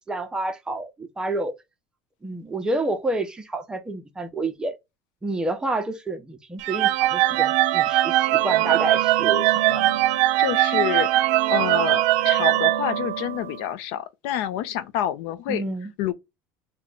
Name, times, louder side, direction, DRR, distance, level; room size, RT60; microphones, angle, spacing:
voice 1, 0.1-1.5 2.2-4.7 5.2-10.0 15.5-15.9, right 2 dB, 10° right, 0.6 m, -29 dB
sound 1, 6.6-13.6, right 15 dB, 75° right, 0.4 m, -21 dB
voice 2, 10.4-15.6 16.0-16.1, left 11 dB, 70° left, 0.5 m, -28 dB
2.9 x 2.2 x 3.6 m
cardioid pair, 140°, 7 cm